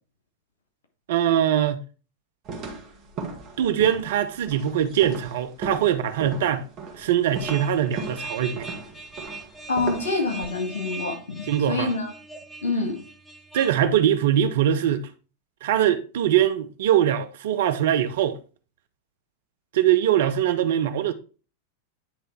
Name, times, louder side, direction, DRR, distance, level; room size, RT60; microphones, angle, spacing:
voice 1, 1.1-1.8 3.6-6.7 6.9-8.7 11.5-11.9 13.5-15.1 15.6-18.4 19.7-21.1, right 10 dB, 55° right, 0.7 m, -22 dB
sound 1, 2.5-10.4, right 4 dB, 35° right, 1.8 m, -37 dB
sound 2, 7.3-13.8, right 3 dB, ahead, 0.9 m, -40 dB
voice 2, 9.7-12.1 12.6-13.0, left 3 dB, 65° left, 2.0 m, -27 dB
9.8 x 3.3 x 4.5 m
figure-of-eight pair, 90°, 0 cm